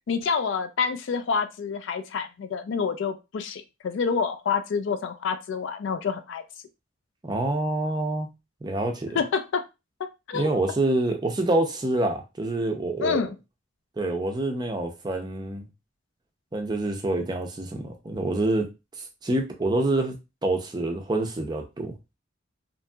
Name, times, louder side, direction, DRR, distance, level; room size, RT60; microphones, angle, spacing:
voice 1, 0.1-6.4 9.2-9.6 10.0-10.5 13.0-13.4, left 5 dB, 65° left, 0.3 m, -28 dB
voice 2, 7.2-8.3 8.6-9.2 10.3-13.2 14.0-15.6 16.5-18.7 19.2-20.2 20.4-21.9, right 2 dB, 20° right, 0.4 m, -26 dB
2.8 x 2.6 x 2.2 m
head